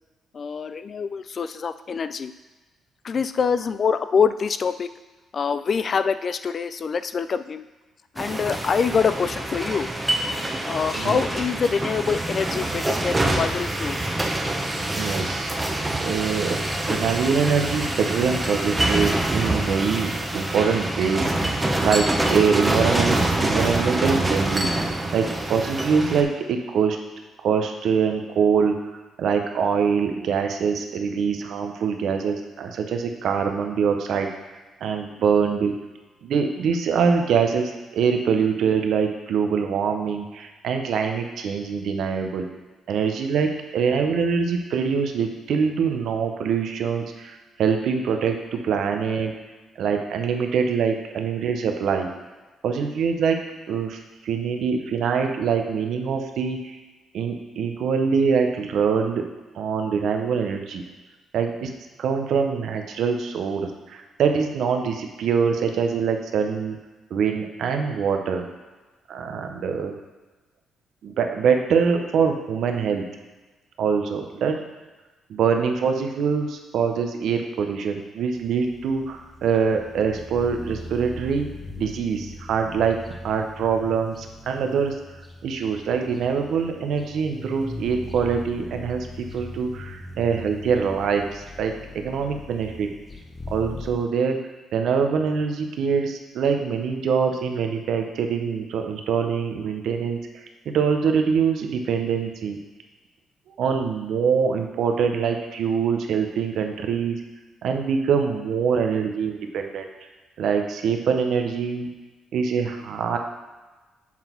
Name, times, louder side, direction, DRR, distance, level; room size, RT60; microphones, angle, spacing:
voice 1, 0.3-2.3 3.0-4.9 5.3-7.6 8.2-9.9 10.6-14.1, left 6 dB, 45° left, 12 dB, 0.3 m, -25 dB
sound 1, 8.2-26.2, right 1 dB, 15° right, 0.9 m, -25 dB
voice 2, 14.9-15.5 16.0-16.6 16.9-21.3 21.8-24.8 25.1-27.0 27.4-28.8 29.2-34.3 34.8-35.7 36.2-42.5 42.9-49.3 49.8-52.1 52.6-56.8 57.1-59.3 59.5-60.8 61.3-61.7 62.0-66.8 67.1-68.5 69.1-69.9 71.0-73.1 73.8-74.6 75.3-81.5 81.8-83.0 83.2-85.0 85.4-92.9 93.5-94.4 94.7-102.6 103.6-107.2 107.6-109.9 110.4-111.9 112.3-113.2, right 6 dB, 70° right, 4 dB, 0.8 m, -24 dB
sound 2, 78.3-94.1, left 2 dB, 20° left, 0.9 m, -40 dB
7.4 x 4.0 x 4.5 m, 1.2 s
cardioid pair, 90°, 0 cm